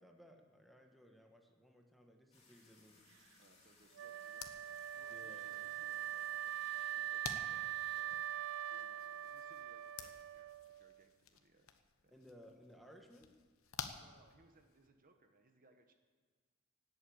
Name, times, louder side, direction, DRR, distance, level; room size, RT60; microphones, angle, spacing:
voice 1, 0.0-3.0 5.1-5.9 12.1-13.3, equal, ahead, 2 dB, 1.4 m, -61 dB
sound 1, 2.3-8.0, left 3 dB, 30° left, 3.1 m, -66 dB
voice 2, 3.4-8.2 8.7-12.1 14.0-15.9, right 2 dB, 40° right, 6 dB, 1.2 m, -69 dB
Wind instrument woodwind instrument, 4.0-11.0, right 11 dB, 60° right, 0.4 m, -42 dB
sound 2, 4.2-14.9, left 7 dB, 70° left, 1.1 m, -53 dB
18.0 x 8.2 x 8.7 m, 1.5 s
head